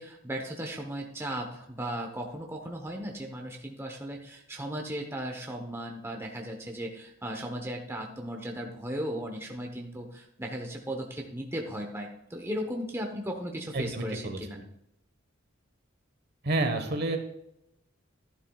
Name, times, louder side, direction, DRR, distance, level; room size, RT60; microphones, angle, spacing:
voice 1, 0.0-14.6, equal, 10° right, 1 dB, 0.9 m, -36 dB
voice 2, 13.7-14.4 16.4-17.2, right 2 dB, 50° right, 6 dB, 1.2 m, -29 dB
11.5 x 11.0 x 2.3 m, 0.79 s
head